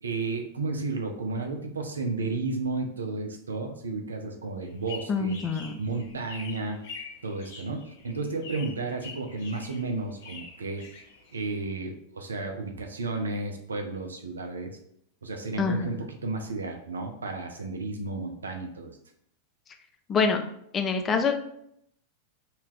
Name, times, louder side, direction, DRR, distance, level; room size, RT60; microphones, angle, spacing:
voice 1, 0.0-5.4 5.8-6.8 7.2-10.9 11.3-14.8 15.2-19.0, right 3 dB, 70° right, 4 dB, 0.5 m, -33 dB
sound 1, 4.6-11.6, left 5 dB, 55° left, 1.0 m, -45 dB
voice 2, 5.1-5.8 15.6-16.0 20.1-20.4 20.7-21.4, left 5 dB, 25° left, 5 dB, 0.4 m, -25 dB
2.7 x 2.3 x 3.6 m, 0.72 s
figure-of-eight pair, 90°, 0 cm